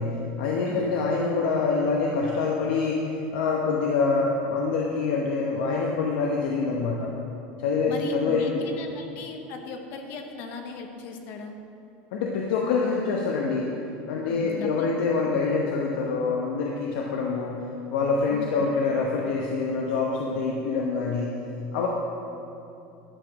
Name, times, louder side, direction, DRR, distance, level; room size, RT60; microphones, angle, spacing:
voice 1, 0.0-7.1 7.6-8.6 12.1-13.7 14.1-21.3 21.7-21.9, left 4 dB, 80° left, -1 dB, 0.9 m, -26 dB
voice 2, 0.7-1.0 7.9-11.5 14.3-14.9 18.3-18.7, left 4 dB, 45° left, 4 dB, 0.9 m, -37 dB
11.5 x 4.9 x 6.3 m, 2.7 s
cardioid pair, 175°, 5 cm